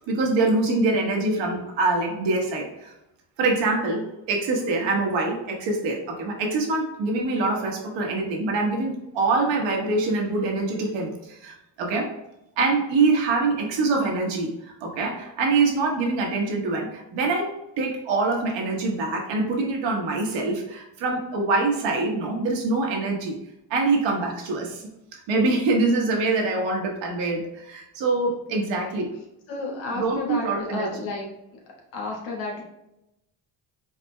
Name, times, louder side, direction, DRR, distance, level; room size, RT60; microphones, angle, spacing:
voice 1, 0.1-2.9 3.4-12.1 12.6-17.5 17.8-23.4 23.7-24.8 25.1-29.1 30.0-31.0, right 3 dB, 80° right, 0 dB, 1.3 m, -24 dB
voice 2, 28.5-29.1 29.5-31.3 31.9-32.6, left 3 dB, 90° left, -2 dB, 1.4 m, -32 dB
4.9 x 4.2 x 2.2 m, 0.88 s
supercardioid pair, 80°, 44 cm